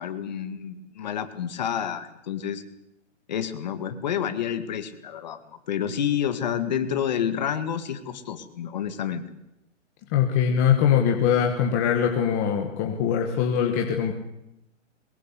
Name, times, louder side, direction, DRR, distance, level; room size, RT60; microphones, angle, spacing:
voice 1, 0.0-2.6 3.3-5.4 5.7-9.2, left 9 dB, 35° left, 9 dB, 2.0 m, -29 dB
voice 2, 10.1-14.1, left 8 dB, 15° left, 2 dB, 1.1 m, -22 dB
22.5 x 21.0 x 8.4 m, 0.84 s
hypercardioid pair, 180°, 38 cm